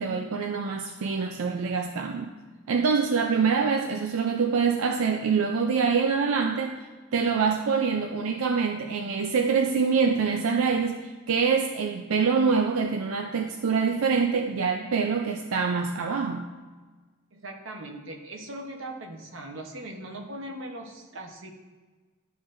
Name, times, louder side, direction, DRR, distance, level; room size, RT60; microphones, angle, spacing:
voice 1, 0.0-2.3 2.7-16.5, right 5 dB, 85° right, 4 dB, 0.4 m, -25 dB
voice 2, 17.3-21.5, right 1 dB, 60° right, 2 dB, 0.9 m, -39 dB
11.5 x 3.9 x 2.6 m, 1.3 s
head